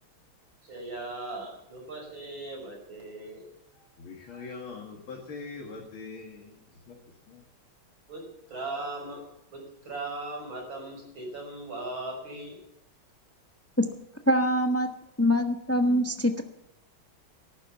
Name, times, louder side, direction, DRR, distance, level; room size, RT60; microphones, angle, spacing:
voice 1, 0.6-3.4 4.3-4.6 8.1-8.2 8.5-9.2 9.5-12.6, right 2 dB, 70° right, 0 dB, 6.4 m, -38 dB
voice 2, 4.0-6.5 6.9-7.0 7.3-7.4, left 4 dB, 90° left, -1 dB, 2.9 m, -42 dB
voice 3, 14.3-14.9 15.2-16.4, equal, 15° left, 6 dB, 0.6 m, -23 dB
14.5 x 12.0 x 7.1 m, 0.81 s
omnidirectional pair, 2.2 m